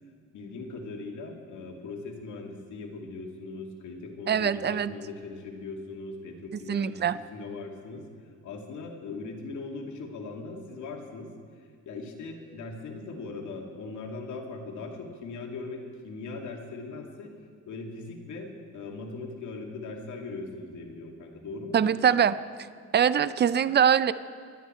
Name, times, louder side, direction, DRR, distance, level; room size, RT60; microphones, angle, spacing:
voice 1, 0.3-8.1 8.4-11.3 11.9-17.3 17.7-21.9, left 3 dB, 75° left, 1 dB, 2.5 m, -39 dB
voice 2, 4.3-4.9 6.7-7.2 21.7-22.3 22.9-24.1, right 8 dB, 35° right, 15 dB, 0.6 m, -23 dB
27.0 x 10.5 x 4.5 m, 2.2 s
cardioid pair, 90°, 30 cm